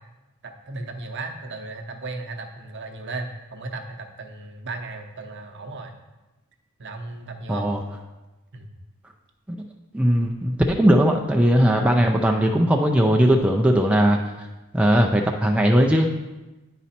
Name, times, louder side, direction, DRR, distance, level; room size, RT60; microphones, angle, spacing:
voice 1, 0.4-5.9 6.8-7.7 8.5-8.7, right 3 dB, 50° right, 4 dB, 0.7 m, -35 dB
voice 2, 7.5-7.8 9.9-14.2 14.7-16.1, equal, 5° right, 1 dB, 0.3 m, -19 dB
9.6 x 4.1 x 4.3 m, 1.1 s
head